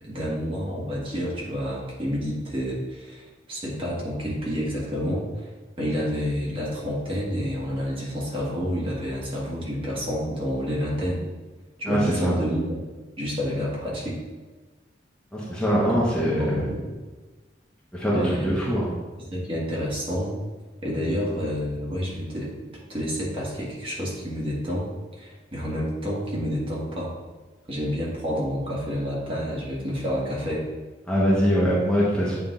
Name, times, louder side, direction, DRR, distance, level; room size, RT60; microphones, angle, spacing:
voice 1, 0.0-5.5 5.8-11.2 11.8-12.8 13.2-14.2 15.9-16.0 16.2-16.9 18.1-18.6 19.2-20.3 20.8-22.5 22.9-24.9 25.2-27.1 27.7-30.7, equal, 30° right, -5 dB, 1.7 m, -29 dB
voice 2, 11.8-12.3 15.3-16.5 17.9-18.9 31.1-32.4, equal, 5° left, -7 dB, 1.1 m, -23 dB
8.8 x 3.4 x 3.9 m, 1.3 s
head